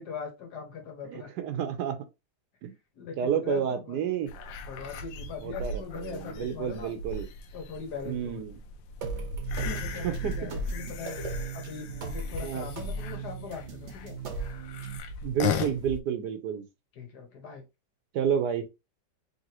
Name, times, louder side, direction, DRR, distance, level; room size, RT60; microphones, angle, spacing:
voice 1, 0.0-1.3 2.9-4.0 4.7-6.9 7.5-8.4 9.7-11.2 11.5-14.2 16.9-17.6, left 6 dB, 65° left, 1.6 m, -40 dB
voice 2, 1.0-2.0 2.6-2.7 3.2-4.3 5.4-7.3 8.1-8.6 10.0-10.3 12.4-12.7 15.2-16.6 18.1-18.6, right 8 dB, 70° right, 1.2 m, -30 dB
sound 1, 4.3-16.0, left 4 dB, 85° left, 1.3 m, -37 dB
sound 2, 9.0-15.0, right 4 dB, 50° right, 0.9 m, -37 dB
3.9 x 3.3 x 2.8 m
omnidirectional pair, 1.9 m